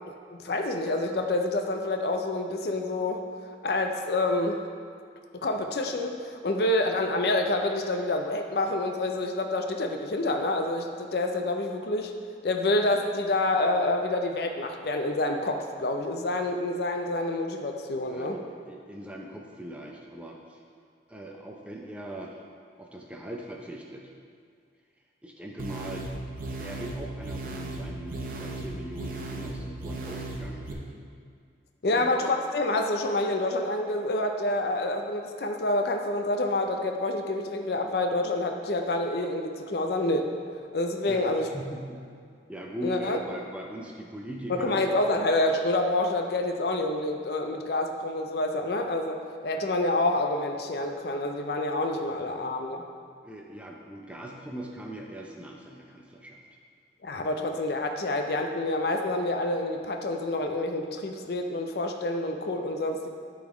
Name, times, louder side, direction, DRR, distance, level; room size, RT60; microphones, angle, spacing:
voice 1, 0.1-3.2 3.6-4.7 5.4-12.1 12.4-18.4 31.8-40.3 40.7-41.5 42.8-43.2 44.5-52.8 57.0-63.1, left 2 dB, 60° left, 4 dB, 0.5 m, -28 dB
voice 2, 18.1-20.6 21.1-22.4 22.8-24.1 25.2-30.9 31.8-32.1 41.0-42.0 42.5-44.8 52.0-52.5 53.2-56.4, right 1 dB, 5° right, -1 dB, 0.5 m, -40 dB
sound 1, 25.6-30.7, right 2 dB, 50° right, 0.7 m, -36 dB
11.5 x 4.0 x 3.0 m, 2.2 s
head